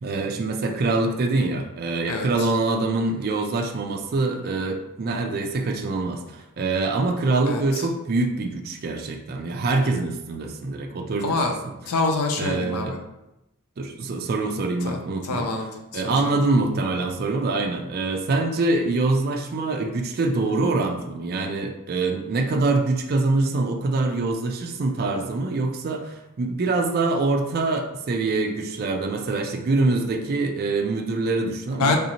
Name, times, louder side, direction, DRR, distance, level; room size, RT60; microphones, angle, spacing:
voice 1, 0.0-11.4 11.6-11.7 12.4-13.0 13.8-15.5 15.9-32.0, right 3 dB, 45° right, 3 dB, 0.4 m, -24 dB
voice 2, 7.5-7.9 11.2-11.6 11.9-13.0 14.8-15.0 15.2-16.4 31.7-32.0, left 3 dB, 85° left, 3 dB, 0.4 m, -26 dB
3.3 x 2.7 x 2.8 m, 0.90 s
head